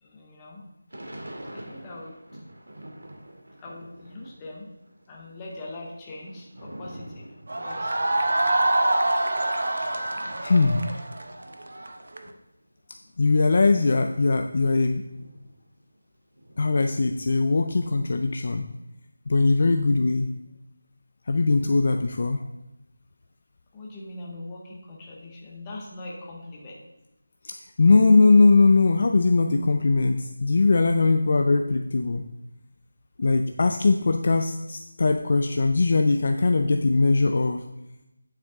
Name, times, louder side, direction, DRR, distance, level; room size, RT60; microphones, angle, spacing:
voice 1, 0.0-0.6 1.5-2.1 3.6-4.7 5.1-7.3 7.5-8.1 23.7-26.8, left 2 dB, 10° left, -3 dB, 0.9 m, -41 dB
Thunder / Rain, 0.9-4.5 4.8-11.9 12.5-12.6 12.8-16.0 16.3-18.1, right 1 dB, 90° right, 2.2 m, -46 dB
sound 1, 7.5-12.2, right 1 dB, 55° right, 0.9 m, -25 dB
voice 2, 10.4-11.0 13.2-15.0 16.6-18.7 19.3-20.3 21.3-22.4 27.4-32.2 33.2-37.6, left 3 dB, 30° left, 6 dB, 0.4 m, -20 dB
9.0 x 7.4 x 3.6 m, 0.92 s
figure-of-eight pair, 180°, 0 cm